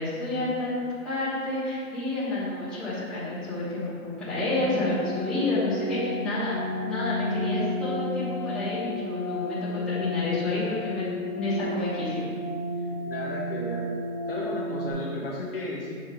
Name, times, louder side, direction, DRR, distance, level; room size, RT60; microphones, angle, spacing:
voice 1, 0.0-11.1 11.3-12.3, left 2 dB, ahead, -14 dB, 1.3 m, -30 dB
sound 1, 4.3-14.9, left 1 dB, 20° right, 0.5 m, -32 dB
voice 2, 13.0-13.9 14.3-16.0, left 2 dB, 40° left, -4 dB, 0.9 m, -34 dB
7.1 x 5.3 x 3.6 m, 2.1 s
hypercardioid pair, 170°, 43 cm